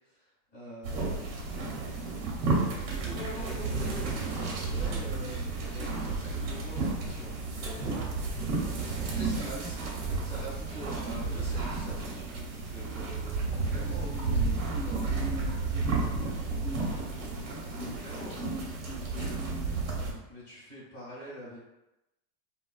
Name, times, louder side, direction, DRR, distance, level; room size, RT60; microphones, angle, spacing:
voice 1, 0.5-2.0 3.0-8.3 9.1-9.8 10.2-13.4 13.6-14.1 14.9-15.3 17.7-18.4 20.3-21.6, equal, 15° left, -10 dB, 1.1 m, -45 dB
sound 1, 0.8-20.1, right 3 dB, 60° right, 1.0 m, -32 dB
voice 2, 9.3-9.7 13.7-19.9, right 1 dB, 5° right, -13 dB, 0.5 m, -42 dB
3.4 x 2.3 x 2.3 m, 0.94 s
supercardioid pair, 175°, 47 cm